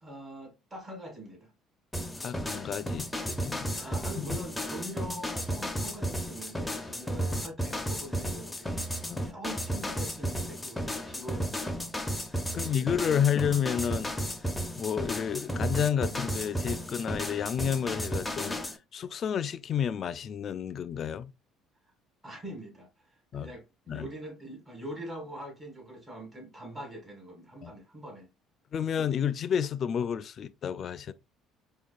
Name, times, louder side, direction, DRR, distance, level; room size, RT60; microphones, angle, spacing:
voice 1, 0.0-1.5 3.8-8.9 9.2-11.9 12.4-12.9 13.2-13.3 22.2-22.9 23.4-28.3 28.8-28.9, right 1 dB, 20° right, 1.6 m, -43 dB
sound 1, 1.9-18.8, equal, 10° left, 0.6 m, -33 dB
voice 2, 2.2-4.3 9.1-9.2 12.5-14.1 14.8-18.6 18.9-21.3 23.3-23.5 23.9-24.1 27.6-27.7 28.7-31.1, left 8 dB, 45° left, 0.3 m, -30 dB
4.8 x 2.5 x 2.2 m
supercardioid pair, 95°, 0 cm